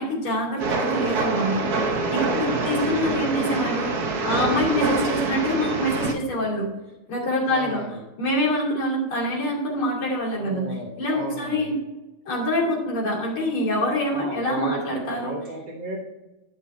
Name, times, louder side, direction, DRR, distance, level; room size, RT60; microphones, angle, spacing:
voice 1, 0.0-1.6 2.1-6.7 7.1-7.8 8.2-11.8 12.3-15.3, equal, 75° left, -3 dB, 3.7 m, -25 dB
Train, 0.6-6.1, right 3 dB, 55° right, 1.4 m, -25 dB
voice 2, 2.5-3.0 7.4-8.0 10.4-11.7 14.1-14.8 15.1-16.0, right 1 dB, 30° right, -1 dB, 1.2 m, -34 dB
11.5 x 6.1 x 4.3 m, 1.0 s
omnidirectional pair, 2.3 m